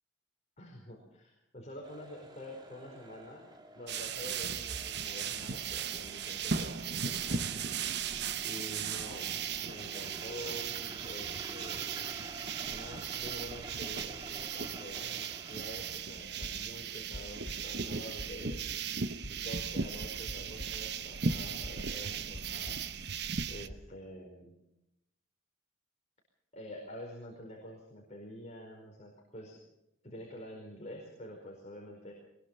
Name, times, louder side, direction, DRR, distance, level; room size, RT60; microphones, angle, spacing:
voice 1, 0.6-3.5 3.7-7.5 8.4-10.7 11.0-12.1 12.7-18.8 19.3-22.8 23.5-24.5 26.5-29.6 30.0-32.1, equal, 35° left, -1 dB, 4.8 m, -47 dB
sound 1, 1.8-16.2, right 1 dB, 20° right, 2.4 m, -51 dB
sound 2, 3.9-23.7, right 6 dB, 55° right, 0.9 m, -37 dB
sound 3, 16.4-21.0 21.3-22.0 22.3-22.9 23.4-23.9, equal, 65° left, 4.8 m, -46 dB
22.0 x 21.5 x 5.6 m, 0.86 s
head